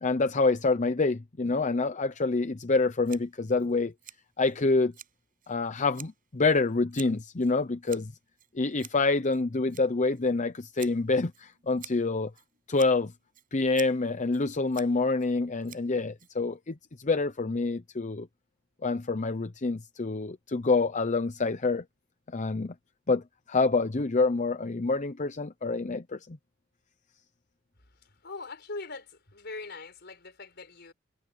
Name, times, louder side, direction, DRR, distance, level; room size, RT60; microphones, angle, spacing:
voice 1, 0.0-3.9 4.4-4.9 5.5-8.1 8.5-12.3 12.7-13.1 13.5-18.3 18.8-21.8 22.3-22.7 23.1-26.4, left 3 dB, 40° left, 0.7 m, -27 dB
Scissors, 3.0-16.8, right 10 dB, 45° right, 7.6 m, -52 dB
voice 2, 28.2-30.9, left 3 dB, 60° left, 4.8 m, -41 dB
head